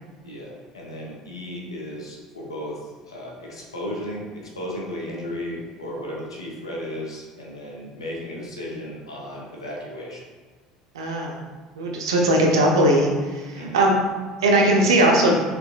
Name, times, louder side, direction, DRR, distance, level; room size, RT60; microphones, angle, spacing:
voice 1, 0.2-10.2 13.5-13.9, left 1 dB, 80° left, -2 dB, 0.9 m, -35 dB
voice 2, 10.9-11.3 11.8-13.9 14.4-15.4, right 1 dB, 70° right, 0 dB, 0.8 m, -19 dB
5.9 x 3.5 x 2.5 m, 1.4 s
figure-of-eight pair, 65°, 3 cm